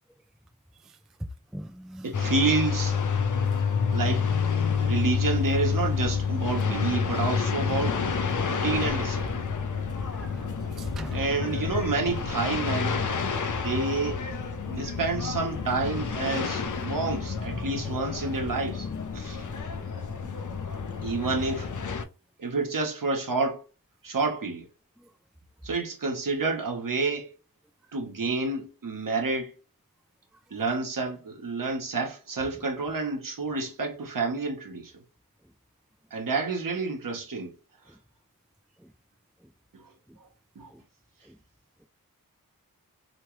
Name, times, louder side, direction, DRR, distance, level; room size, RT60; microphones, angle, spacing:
voice 1, 1.5-2.1 10.1-10.5 10.8-11.3 19.4-19.6 20.2-20.3 25.0-25.1 41.3-41.4, right 1 dB, ahead, 0.3 m, -40 dB
voice 2, 2.0-3.0 3.9-4.3 4.8-8.0 8.4-9.4 11.1-13.0 13.6-14.2 14.7-18.9 19.1-19.4 21.0-21.7 22.4-23.6 24.0-24.7 25.6-27.3 27.9-29.5 30.5-34.9 36.1-37.5 40.6-40.7, right 3 dB, 60° right, 1.1 m, -29 dB
sound 1, 2.1-22.0, left 5 dB, 55° left, 0.7 m, -29 dB
3.1 x 2.2 x 3.0 m
cardioid pair, 50°, 37 cm